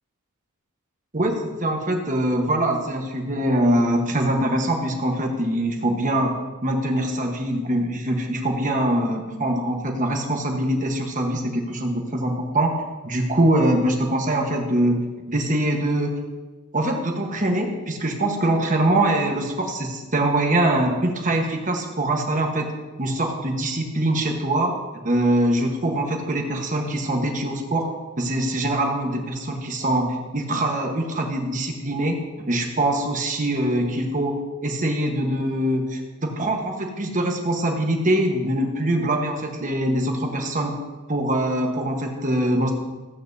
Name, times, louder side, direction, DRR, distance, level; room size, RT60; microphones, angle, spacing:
voice 1, 1.1-12.7 13.0-16.2 16.7-22.7 23.0-24.8 25.0-27.9 28.2-40.8 41.1-42.7, right 1 dB, 35° right, 2 dB, 1.2 m, -23 dB
14.5 x 8.6 x 2.7 m, 1.3 s
head